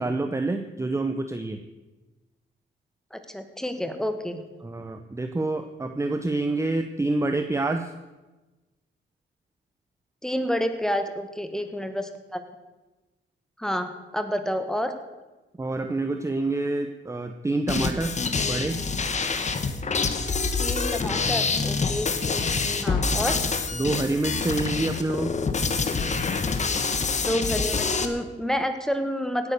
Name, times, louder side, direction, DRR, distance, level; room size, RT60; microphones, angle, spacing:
voice 1, 0.0-1.6 4.6-7.9 15.6-18.1 18.5-18.8 23.7-25.3, right 2 dB, 15° right, 7 dB, 0.8 m, -27 dB
voice 2, 3.1-4.4 10.2-12.4 13.6-14.9 20.6-22.1 22.8-23.4 27.2-29.5, equal, 5° left, 8 dB, 1.6 m, -29 dB
sound 1, 17.7-28.0, left 4 dB, 35° left, 1.4 m, -26 dB
17.0 x 9.6 x 6.7 m, 1.1 s
cardioid pair, 110°, 20 cm